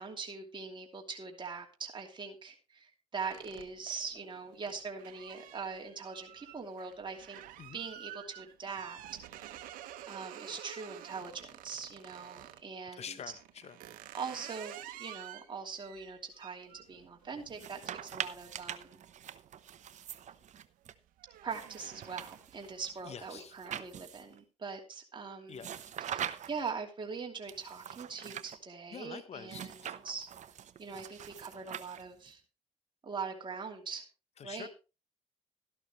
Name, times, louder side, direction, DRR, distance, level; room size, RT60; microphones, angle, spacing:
voice 1, 0.0-7.4 7.7-9.7 10.1-13.2 14.1-19.0 21.4-25.7 26.0-30.3 30.8-32.4 33.0-34.0 34.4-34.7, right 5 dB, 35° right, 1 dB, 2.9 m, -42 dB
sound 1, 3.3-12.7 13.3-19.7 20.1-20.5 20.8-22.6, right 12 dB, 85° right, 1.1 m, -50 dB
voice 2, 13.0-13.8 23.1-23.5 25.5-26.0 28.9-29.9 34.4-34.7, left 7 dB, 50° left, 13 dB, 1.0 m, -46 dB
sound 2, 17.5-20.9 21.5-24.4 25.6-26.7 27.5-28.6 29.5-32.3, right 9 dB, 60° right, 0.9 m, -43 dB
13.0 x 11.5 x 3.2 m, 0.30 s
supercardioid pair, 70°, 14 cm